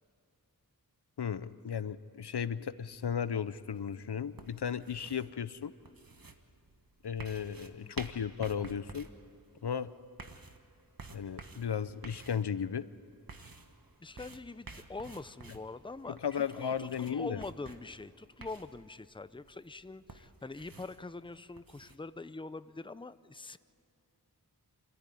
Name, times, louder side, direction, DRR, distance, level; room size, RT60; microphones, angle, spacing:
voice 1, 1.2-5.7 7.0-9.1 9.6-9.9 11.1-12.9 16.1-17.4, left 7 dB, 90° left, 15 dB, 0.7 m, -35 dB
sound 1, 2.9-22.0, right 3 dB, 60° right, 1.4 m, -52 dB
voice 2, 14.0-23.6, left 3 dB, 15° left, 14 dB, 0.6 m, -44 dB
26.5 x 14.0 x 9.9 m, 2.7 s
wide cardioid pair, 45°, 39 cm